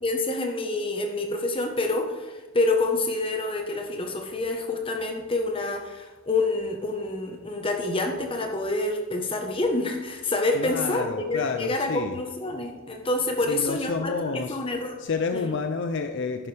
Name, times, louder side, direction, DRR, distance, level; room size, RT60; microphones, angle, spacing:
voice 1, 0.0-15.0 15.3-15.4, left 2 dB, 25° left, 3 dB, 1.1 m, -27 dB
voice 2, 10.5-12.2 13.4-14.6 15.0-16.5, left 4 dB, 55° left, 7 dB, 0.5 m, -29 dB
11.0 x 9.6 x 3.4 m, 1.2 s
head